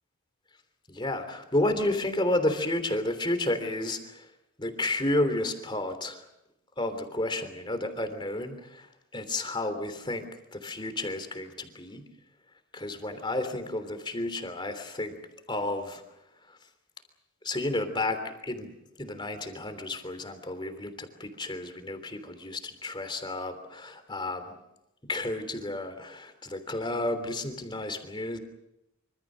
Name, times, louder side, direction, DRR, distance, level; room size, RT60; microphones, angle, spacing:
voice 1, 0.9-4.3 4.6-6.2 6.8-12.1 12.7-15.2 15.5-16.0 16.4-16.6 17.4-18.7 19.0-24.5 25.0-28.4, left 1 dB, 20° left, 8 dB, 3.2 m, -31 dB
26.0 x 25.5 x 6.4 m, 0.87 s
head